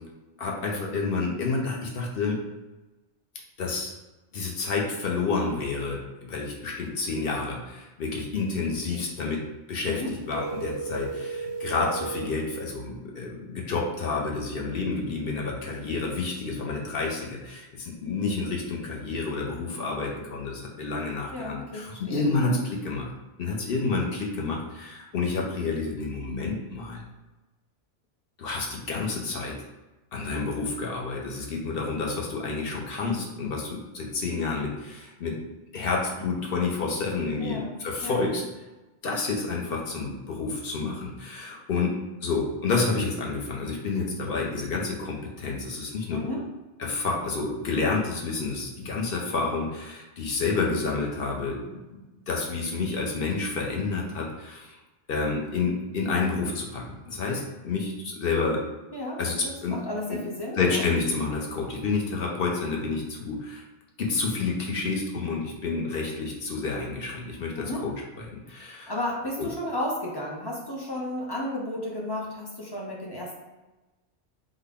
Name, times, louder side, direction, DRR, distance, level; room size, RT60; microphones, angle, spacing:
voice 1, 0.4-2.4 3.6-3.9 4.3-6.0 6.3-9.4 9.7-23.1 23.4-27.0 28.4-29.5 30.1-35.4 35.7-38.4 39.0-41.9 42.2-46.2 46.8-51.6 52.3-54.8 55.1-58.6 59.2-59.3 59.6-59.8 60.1-60.2 60.6-63.6 64.0-68.9 69.4-69.5, left 4 dB, 55° left, -1 dB, 0.8 m, -29 dB
sound 1, 10.3-12.4, right 4 dB, 90° right, 0.9 m, -34 dB
voice 2, 21.3-22.6 37.4-38.2 46.1-46.4 58.9-60.8 67.6-67.8 68.6-73.4, left 1 dB, 30° left, -3 dB, 0.4 m, -33 dB
3.8 x 2.2 x 3.4 m, 1.1 s
omnidirectional pair, 1.2 m